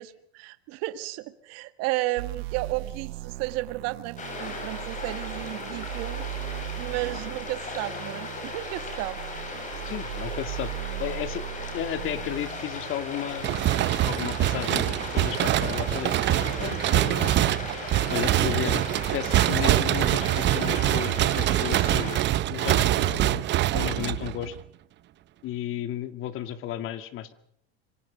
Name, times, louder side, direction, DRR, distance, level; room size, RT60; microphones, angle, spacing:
voice 1, 0.0-9.2 23.7-24.1, right 18 dB, 50° right, 12 dB, 1.8 m, -33 dB
sound 1, 2.2-14.1, right 18 dB, 70° right, 1.2 m, -38 dB
sound 2, 4.2-22.2, left 3 dB, 25° left, 7.9 m, -37 dB
voice 2, 9.9-11.4 11.7-13.6 14.0-17.5 17.8-18.8 19.1-22.2 22.5-23.4 23.7-24.6 25.4-27.3, left 11 dB, 40° left, 12 dB, 2.3 m, -34 dB
sound 3, 13.4-24.6, right 14 dB, 35° right, 1.0 m, -24 dB
26.5 x 24.5 x 5.3 m, 0.67 s
supercardioid pair, 135°, 32 cm